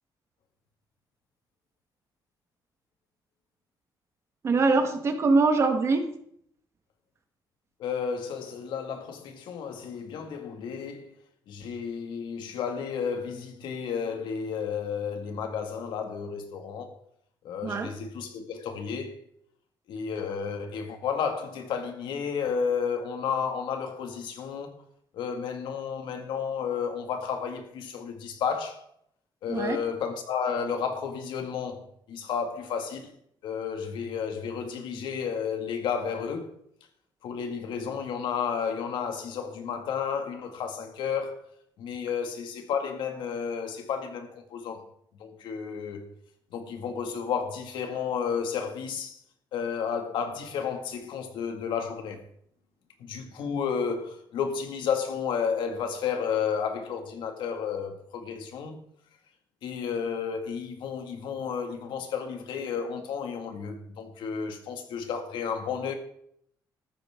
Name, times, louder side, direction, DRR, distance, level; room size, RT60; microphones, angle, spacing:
voice 1, 4.4-6.0 17.6-17.9 29.5-29.8, right 3 dB, 35° right, 1.5 m, -23 dB
voice 2, 7.8-11.1 11.5-17.0 17.4-19.2 19.9-24.8 25.1-28.8 29.4-33.1 33.4-36.5 37.2-41.4 41.8-44.8 45.2-46.1 46.5-49.2 49.5-52.2 53.0-58.7 59.6-65.9, left 6 dB, 85° left, 2.2 m, -32 dB
14.0 x 13.5 x 3.8 m
cardioid pair, 175°, 8 cm